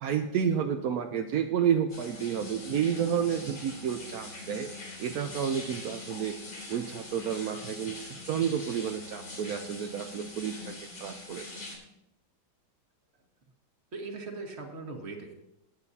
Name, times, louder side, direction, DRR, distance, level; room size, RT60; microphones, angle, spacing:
voice 1, 0.0-4.7 5.0-6.4 6.7-10.7 11.0-11.5, right 8 dB, 70° right, 5 dB, 0.9 m, -30 dB
sound 1, 1.9-11.8, left 2 dB, 70° left, 4.7 m, -43 dB
voice 2, 13.9-15.3, right 3 dB, 35° right, 2 dB, 1.6 m, -39 dB
19.5 x 8.9 x 2.8 m, 0.86 s
omnidirectional pair, 2.2 m